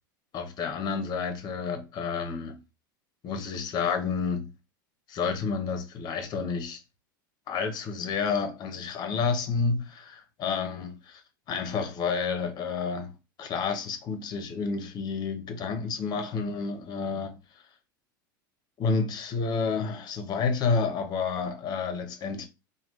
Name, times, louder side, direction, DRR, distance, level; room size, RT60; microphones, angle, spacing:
voice 1, 0.3-2.6 3.2-4.5 5.1-6.8 7.5-11.2 11.5-13.1 13.4-17.4 18.8-22.5, left 5 dB, 40° left, 0.9 m, -30 dB
3.2 x 2.3 x 3.1 m
hypercardioid pair, 100°, 11 cm